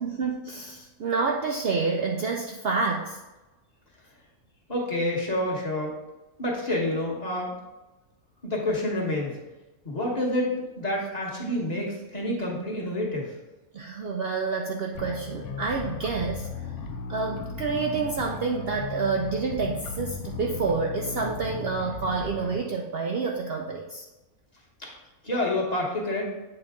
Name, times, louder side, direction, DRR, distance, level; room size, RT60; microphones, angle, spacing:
voice 1, 0.0-3.2 13.7-16.5 17.1-24.1, right 4 dB, 80° right, 1 dB, 0.5 m, -28 dB
voice 2, 4.7-5.9 6.4-7.5 8.4-9.4 9.8-13.3 24.8-24.9 25.2-26.3, left 1 dB, 30° left, -3 dB, 1.1 m, -28 dB
sound 1, 14.9-22.6, left 4 dB, 80° left, 1.1 m, -36 dB
8.0 x 3.9 x 3.5 m, 1.1 s
omnidirectional pair, 1.6 m